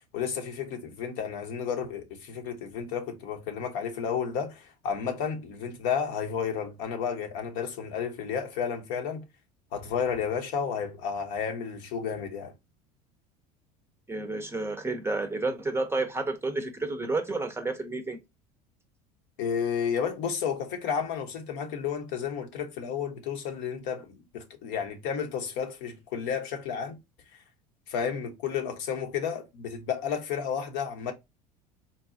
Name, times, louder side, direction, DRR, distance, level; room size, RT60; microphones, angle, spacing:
voice 1, 0.1-9.2 9.7-12.5 19.4-27.0 27.9-31.1, left 7 dB, 60° left, 0.9 m, -32 dB
voice 2, 14.1-18.2, right 3 dB, 10° right, 0.6 m, -30 dB
3.9 x 2.3 x 2.5 m
hypercardioid pair, 70°, 20 cm